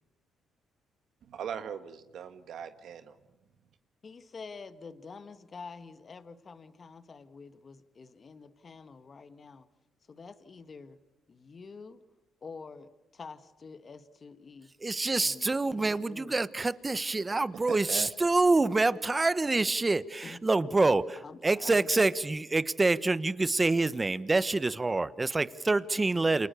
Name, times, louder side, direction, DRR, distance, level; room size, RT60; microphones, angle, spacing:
voice 1, 1.3-3.1 17.3-17.4 17.7-18.1, right 8 dB, 70° right, 1.5 m, -39 dB
voice 2, 4.0-9.7 10.1-11.0 11.3-12.0 12.4-14.7 15.2-16.4 20.2-20.7 21.2-21.9, left 4 dB, 40° left, 1.8 m, -47 dB
voice 3, 14.8-21.2 21.4-26.5, right 3 dB, 20° right, 1.1 m, -26 dB
29.0 x 28.0 x 6.9 m
cardioid pair, 90°, 0 cm